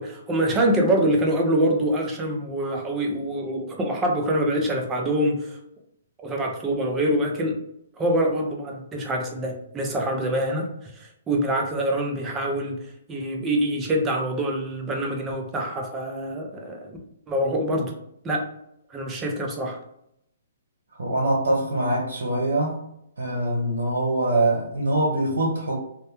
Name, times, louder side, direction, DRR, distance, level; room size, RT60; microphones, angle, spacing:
voice 1, 0.0-5.6 6.2-7.6 8.0-12.8 13.1-17.0 17.3-17.9 18.2-18.5 18.9-19.8, right 1 dB, 15° right, 1 dB, 0.5 m, -25 dB
voice 2, 21.0-22.8 23.2-25.7, right 1 dB, 80° right, -2 dB, 0.7 m, -23 dB
2.1 x 2.1 x 2.9 m, 0.76 s
hypercardioid pair, 140°, 0 cm